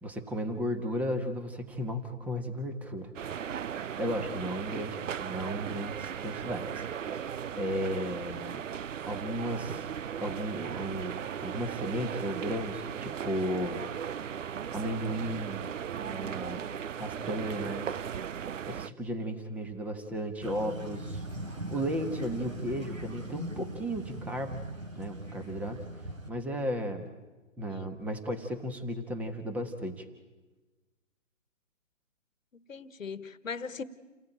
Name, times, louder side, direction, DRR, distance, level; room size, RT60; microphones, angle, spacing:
voice 1, 0.0-3.1 4.0-6.8 7.1-8.7 9.0-9.8 10.2-13.8 14.7-16.6 17.0-18.0 18.7-24.6 24.9-25.9 26.3-27.1 27.6-30.0, equal, 5° right, 1.2 m, -35 dB
sound 1, 3.1-18.9, right 8 dB, 75° right, 0.7 m, -37 dB
sound 2, 20.4-26.3, right 1 dB, 90° right, 4.8 m, -40 dB
voice 2, 32.5-33.8, left 5 dB, 80° left, 1.5 m, -39 dB
29.0 x 18.5 x 9.1 m
hypercardioid pair, 150°, 39 cm